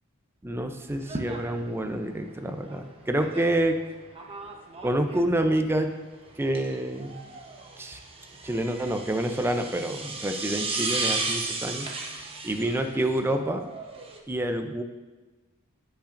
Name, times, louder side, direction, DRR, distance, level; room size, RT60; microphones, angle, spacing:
voice 1, 0.4-3.8 4.8-5.9 6.4-7.2 7.8-8.0 8.4-11.9 12.4-13.7 14.3-14.8, right 1 dB, 10° right, 6 dB, 0.5 m, -27 dB
sound 1, 0.9-14.2, right 3 dB, 25° right, 0.9 m, -35 dB
16.5 x 5.7 x 2.6 m, 1.2 s
head